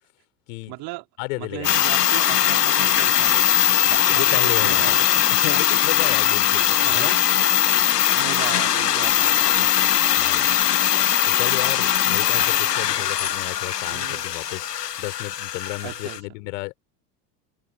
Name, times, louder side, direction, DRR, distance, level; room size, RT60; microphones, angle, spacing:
voice 1, 0.7-1.0 1.4-5.6 6.8-7.1 7.7-10.3 12.0-12.3 13.9-14.3 15.8-16.2, right 23 dB, 50° right, 3.6 m, -37 dB
voice 2, 1.2-1.8 3.8-5.0 5.4-7.2 10.1-10.6 11.3-14.7 15.0-16.7, left 27 dB, 55° left, 5.1 m, -33 dB
sound 1, 1.6-16.2, left 10 dB, 85° left, 0.5 m, -20 dB
open air
figure-of-eight pair, 75°, 47 cm